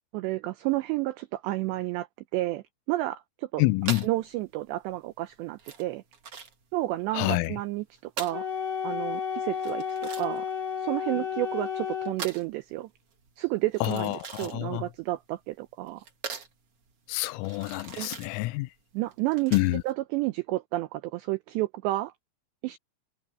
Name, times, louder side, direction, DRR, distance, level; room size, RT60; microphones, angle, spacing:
voice 1, 0.1-2.1 2.3-3.6 4.0-6.0 6.7-8.5 8.8-10.5 10.8-12.9 13.4-14.1 14.4-16.0 18.0-18.2 18.9-19.6 19.9-22.1 22.6-22.8, right 18 dB, 90° right, 2.5 m, -31 dB
voice 2, 3.6-4.1 7.1-7.6 13.8-14.9 17.1-18.7 19.5-19.8, left 20 dB, 85° left, 3.3 m, -27 dB
sound 1, 3.8-19.9, right 6 dB, 40° right, 2.2 m, -42 dB
Wind instrument woodwind instrument, 8.3-12.2, left 7 dB, 40° left, 3.4 m, -32 dB
omnidirectional pair, 5.9 m